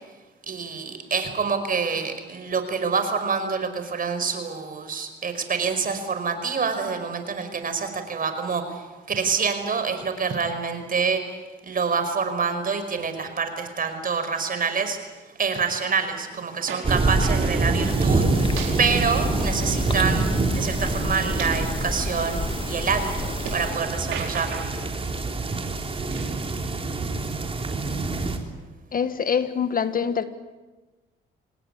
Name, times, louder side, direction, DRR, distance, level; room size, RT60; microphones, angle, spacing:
voice 1, 0.5-11.2 11.6-15.0 15.4-24.6, right 5 dB, 45° right, 8 dB, 5.2 m, -27 dB
sound 1, 16.7-17.7 18.4-20.4 20.8-23.8 24.1-25.0 26.1-26.6, right 7 dB, 85° right, 4.8 m, -39 dB
sound 2, 16.8-28.4, right 3 dB, 30° right, 3.7 m, -26 dB
sound 3, 17.8-23.7, left 3 dB, 25° left, 1.7 m, -32 dB
voice 2, 28.9-30.2, left 7 dB, 45° left, 11 dB, 1.6 m, -24 dB
26.5 x 19.5 x 9.9 m, 1.2 s
cardioid pair, 90°, 20 cm